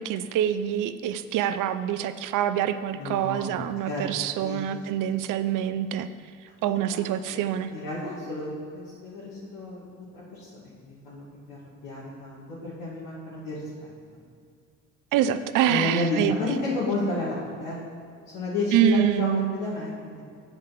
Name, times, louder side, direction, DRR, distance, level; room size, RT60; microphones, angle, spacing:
voice 1, 0.0-6.1 6.6-7.7 15.1-16.4 18.7-19.5, right 10 dB, 65° right, 12 dB, 0.6 m, -25 dB
voice 2, 2.9-4.6 6.9-7.0 7.3-9.8 10.3-13.9 15.7-17.8 18.3-20.3, left 2 dB, 80° left, -10 dB, 2.4 m, -32 dB
8.8 x 4.9 x 5.9 m, 2.3 s
supercardioid pair, 80°, 34 cm